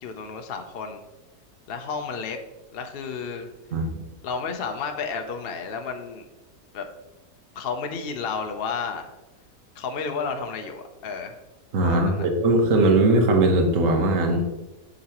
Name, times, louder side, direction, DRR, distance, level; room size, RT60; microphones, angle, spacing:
voice 1, 0.0-1.0 1.7-2.4 2.7-3.5 4.2-6.2 6.7-6.9 7.5-9.1 9.8-11.4 11.8-12.3, left 5 dB, 60° left, 5 dB, 0.6 m, -32 dB
voice 2, 11.7-14.4, right 2 dB, 55° right, 4 dB, 1.3 m, -20 dB
7.9 x 6.4 x 2.9 m, 1.1 s
omnidirectional pair, 1.8 m